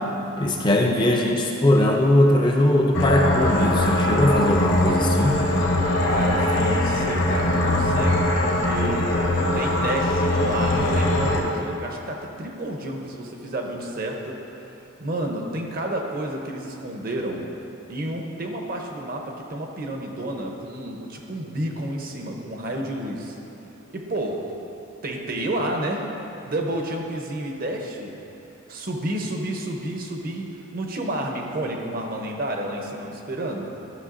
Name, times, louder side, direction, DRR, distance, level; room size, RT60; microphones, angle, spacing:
voice 1, 0.4-5.5, left 1 dB, 20° left, 1 dB, 0.4 m, -20 dB
sound 1, 2.9-11.4, left 1 dB, 60° left, 0.9 m, -21 dB
voice 2, 6.0-9.0 9.5-14.4 15.0-17.5 17.9-23.4 23.9-24.5 25.0-26.1 26.4-28.2 28.7-33.9, right 1 dB, 40° right, 2 dB, 0.7 m, -30 dB
12.0 x 6.1 x 2.5 m, 2.9 s
head